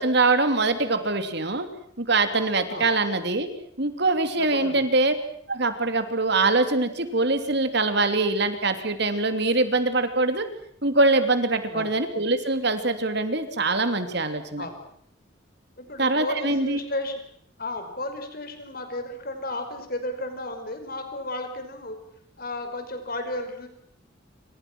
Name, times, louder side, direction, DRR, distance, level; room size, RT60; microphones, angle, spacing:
voice 1, 0.0-1.7 2.0-3.5 3.8-5.1 5.5-10.5 10.8-14.6 16.0-16.8, right 3 dB, 55° right, 8 dB, 3.1 m, -23 dB
voice 2, 4.4-4.9 11.7-11.9 14.6-14.8 15.8-17.2 17.6-22.0 22.4-23.7, left 2 dB, 45° left, 6 dB, 5.5 m, -33 dB
28.0 x 26.5 x 6.3 m, 0.67 s
head